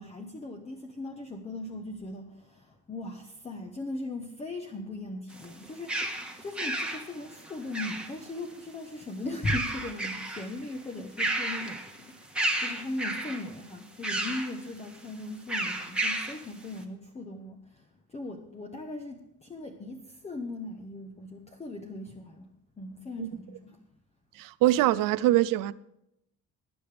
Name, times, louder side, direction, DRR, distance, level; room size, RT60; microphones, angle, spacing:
voice 1, 0.0-23.9, left 2 dB, 20° left, 1.0 m, -39 dB
sound 1, 5.3-8.4 9.3-10.5 10.9-12.0 12.3-13.5 14.0-14.6 15.5-16.4, right 1 dB, 5° right, 1.5 m, -32 dB
voice 2, 24.4-25.7, right 15 dB, 70° right, 0.6 m, -23 dB
20.5 x 9.9 x 3.4 m
cardioid pair, 140°, 34 cm